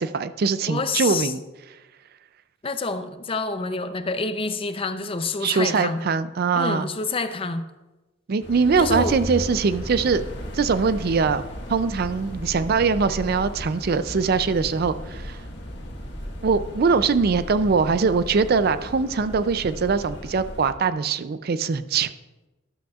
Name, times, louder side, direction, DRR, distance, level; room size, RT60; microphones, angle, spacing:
voice 1, 0.0-1.4 5.4-6.9 8.3-10.2 10.5-11.4 11.7-15.4 16.4-22.1, right 5 dB, 50° right, 13 dB, 0.4 m, -22 dB
voice 2, 0.7-1.3 2.6-6.0 6.5-7.7 8.8-9.2, left 3 dB, 30° left, 10 dB, 0.5 m, -27 dB
sound 1, 8.4-20.7, equal, 65° left, 1.5 m, -35 dB
12.5 x 12.0 x 2.4 m, 1.1 s
head